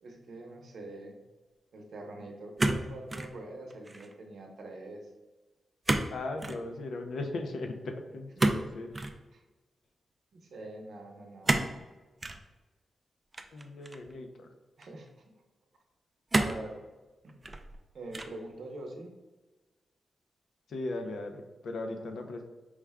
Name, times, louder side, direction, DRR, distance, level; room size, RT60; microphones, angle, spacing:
voice 1, 0.0-1.2 1.7-5.1 8.4-8.5 9.3-9.4 10.3-11.7 14.8-15.1 16.3-16.8 17.2-17.4 17.9-19.1 22.0-22.2, right 2 dB, 65° right, 2 dB, 0.7 m, -44 dB
sound 1, 2.6-3.3 3.7-4.1 5.8-6.1 6.4-6.6 8.4-9.2 11.4-11.8 12.2-12.4 13.3-14.1 14.8-14.9 16.3-16.7 17.3-17.8 18.1-18.5, right 2 dB, 20° right, 0.3 m, -29 dB
voice 2, 6.1-8.9 13.5-14.5 20.7-22.4, left 2 dB, 80° left, 5 dB, 0.5 m, -38 dB
4.7 x 2.2 x 3.4 m, 1.2 s
wide cardioid pair, 120°, 0 cm